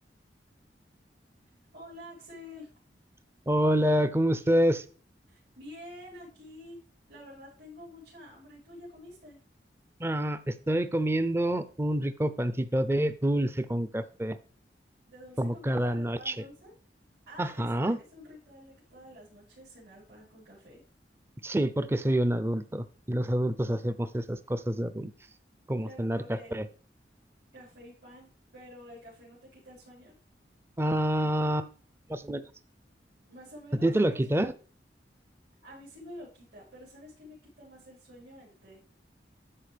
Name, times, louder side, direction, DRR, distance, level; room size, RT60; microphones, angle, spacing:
voice 1, 1.7-2.7 5.3-6.8 7.1-9.4 15.1-16.7 17.3-20.8 25.8-26.5 27.5-30.1 33.3-34.5 35.6-38.8, left 1 dB, 70° right, -9 dB, 4.8 m, -49 dB
voice 2, 3.5-4.8 10.0-14.4 15.4-16.3 17.4-18.0 21.4-25.1 25.7-26.6 30.8-31.7 32.1-32.4 33.8-34.5, right 1 dB, 15° right, 13 dB, 0.5 m, -27 dB
12.5 x 4.6 x 3.4 m, 0.38 s
head